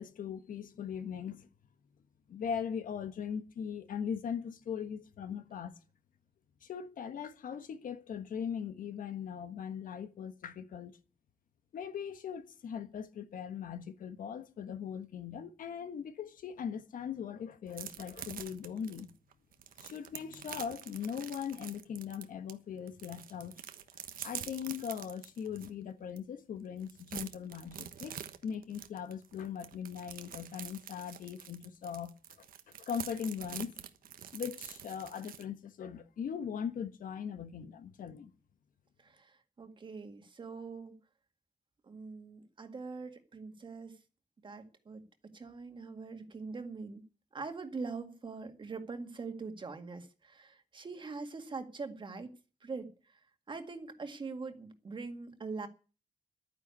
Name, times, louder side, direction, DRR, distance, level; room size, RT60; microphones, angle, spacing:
voice 1, 0.0-1.5 2.3-5.7 6.6-11.0 11.7-19.1 19.8-23.5 24.2-32.1 32.9-33.8 34.3-38.3, left 7 dB, 70° left, 1.4 m, -40 dB
sound 1, 17.7-22.5 22.9-25.7 26.2-26.3 26.6-35.4, right 9 dB, 75° right, 1.3 m, -46 dB
voice 2, 39.0-41.0 41.8-44.0 44.4-47.0 47.3-52.3 52.6-53.2 53.5-55.7, right 4 dB, 35° right, 1.9 m, -43 dB
11.5 x 9.6 x 8.3 m
wide cardioid pair, 145°, 15 cm